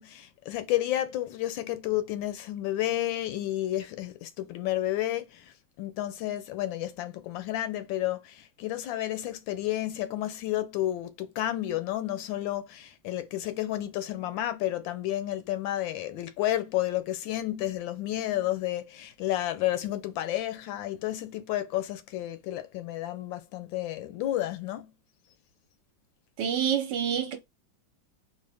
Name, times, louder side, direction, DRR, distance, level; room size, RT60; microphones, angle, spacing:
voice 1, 0.0-24.9, left 14 dB, 75° left, 1.2 m, -31 dB
voice 2, 26.4-27.4, right 8 dB, 70° right, 1.3 m, -27 dB
3.8 x 2.1 x 3.4 m
omnidirectional pair, 2.2 m